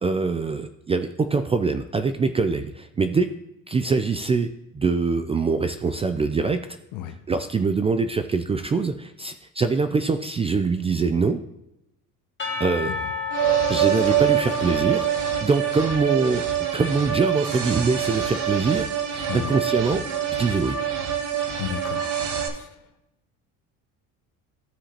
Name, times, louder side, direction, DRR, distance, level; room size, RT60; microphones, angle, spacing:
voice 1, 0.0-3.3 3.7-6.6 7.3-11.4 12.6-12.9 13.7-15.1 15.4-16.4 16.7-20.8, right 4 dB, 20° right, 9 dB, 0.4 m, -24 dB
Percussion / Church bell, 12.4-16.5, left 5 dB, 35° left, 1.8 m, -33 dB
sound 1, 13.3-22.5, right 9 dB, 55° right, 1.3 m, -25 dB
voice 2, 21.6-22.1 22.5-22.7, left 10 dB, 75° left, 6 dB, 0.8 m, -32 dB
14.0 x 4.9 x 2.9 m, 0.86 s
cardioid pair, 115°, 33 cm